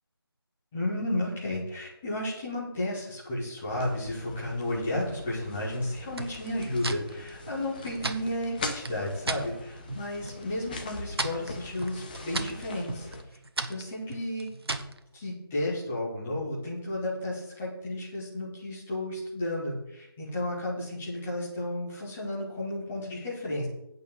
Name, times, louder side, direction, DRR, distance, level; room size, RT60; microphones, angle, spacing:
voice 1, 0.7-13.1 13.7-14.5 15.1-23.7, left 1 dB, ahead, -7 dB, 0.3 m, -33 dB
sound 1, 3.7-13.2, left 3 dB, 20° left, 1.0 m, -43 dB
sound 2, 6.1-9.5 9.9-10.4 10.7-15.0, right 2 dB, 80° right, 1.3 m, -36 dB
8.8 x 5.4 x 7.6 m, 0.82 s
figure-of-eight pair, 170°, 13 cm